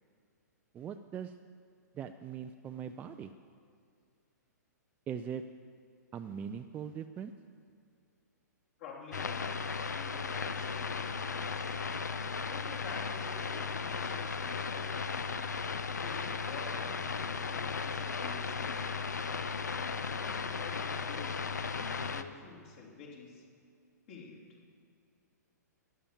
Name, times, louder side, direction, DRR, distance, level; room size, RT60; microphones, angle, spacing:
voice 1, 0.7-1.3 1.9-3.3 5.1-5.4 6.1-7.3, right 8 dB, 15° right, 7 dB, 0.4 m, -40 dB
voice 2, 8.8-9.6 10.0-11.7 12.0-15.1 15.9-19.0 20.0-23.4 24.1-24.5, left 4 dB, 45° left, -3 dB, 3.1 m, -49 dB
sound 1, 9.1-22.2, left 5 dB, 70° left, 0.7 m, -36 dB
12.0 x 9.9 x 7.0 m, 2.3 s
figure-of-eight pair, 115°, 10 cm